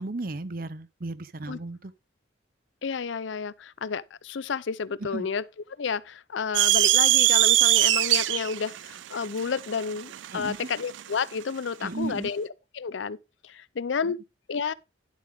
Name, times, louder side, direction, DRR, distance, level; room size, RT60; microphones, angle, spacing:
voice 1, 0.0-1.9 5.0-5.3 10.3-10.7 11.8-12.3 14.0-14.1, right 2 dB, 50° right, 0.7 m, -35 dB
voice 2, 2.8-5.5 5.8-12.5 12.7-13.2 13.4-14.2 14.5-14.7, left 5 dB, 80° left, 0.5 m, -31 dB
sound 1, 6.5-11.1, right 16 dB, 85° right, 0.4 m, -22 dB
11.0 x 7.3 x 3.5 m
head